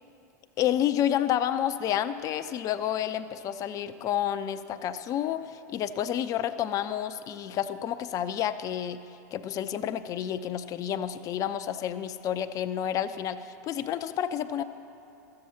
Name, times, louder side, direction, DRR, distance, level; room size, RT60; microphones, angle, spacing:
voice 1, 0.6-14.6, left 10 dB, 40° left, 10 dB, 0.5 m, -30 dB
13.5 x 7.7 x 7.1 m, 2.7 s
hypercardioid pair, 90°, 9 cm